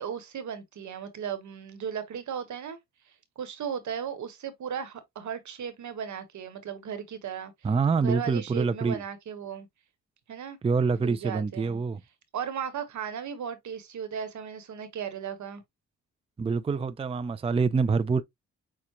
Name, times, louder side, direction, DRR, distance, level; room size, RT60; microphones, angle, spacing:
voice 1, 0.0-2.8 3.1-7.5 8.0-9.7 10.3-10.6 11.0-11.8 12.3-15.6, right 7 dB, 70° right, 1.3 m, -36 dB
voice 2, 7.6-9.0 10.6-12.0 16.4-18.2, right 4 dB, 20° right, 0.4 m, -26 dB
6.7 x 2.4 x 3.0 m
cardioid pair, 75°, 30 cm